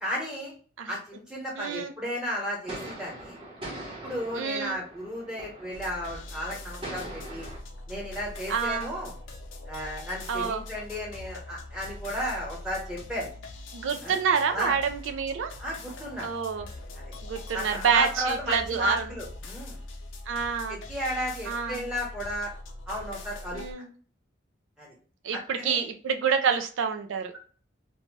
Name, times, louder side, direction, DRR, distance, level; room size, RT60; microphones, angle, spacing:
voice 1, 0.0-0.5 0.9-3.4 4.0-7.5 7.9-9.2 9.6-13.3 14.0-14.2 14.5-14.8 15.6-16.3 16.9-17.1 17.5-19.8 20.7-22.5 22.9-23.6 24.8-25.0 25.3-25.8 26.5-26.6, equal, 5° right, -3 dB, 1.0 m, -34 dB
voice 2, 1.6-1.9 4.4-4.8 8.5-8.9 10.3-10.6 13.7-15.5 16.2-16.6 17.2-19.0 20.3-20.8 21.5-21.8 23.5-23.9 25.2-27.3, right 6 dB, 90° right, 6 dB, 0.4 m, -27 dB
sound 1, 2.6-7.6, right 1 dB, 25° right, 0.8 m, -42 dB
sound 2, 5.7-23.7, left 2 dB, 90° left, 0.6 m, -42 dB
2.7 x 2.2 x 3.1 m, 0.42 s
head